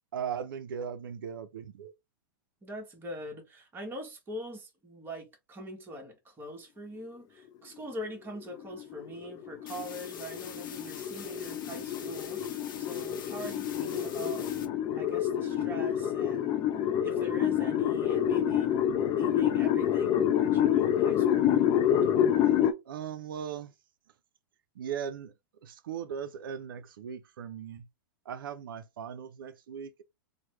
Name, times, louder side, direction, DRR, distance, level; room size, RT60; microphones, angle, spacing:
voice 1, 0.1-1.9 22.9-23.7 24.8-25.3 25.6-27.9 28.3-30.0, right 8 dB, 90° right, 0.4 m, -38 dB
voice 2, 2.6-14.5 14.9-16.6 17.0-22.1, right 1 dB, 20° right, 1.1 m, -43 dB
sound 1, 8.4-22.7, left 10 dB, 35° left, 0.4 m, -27 dB
sound 2, 9.7-14.7, left 8 dB, 75° left, 0.7 m, -46 dB
3.0 x 2.1 x 3.0 m
hypercardioid pair, 125°, 11 cm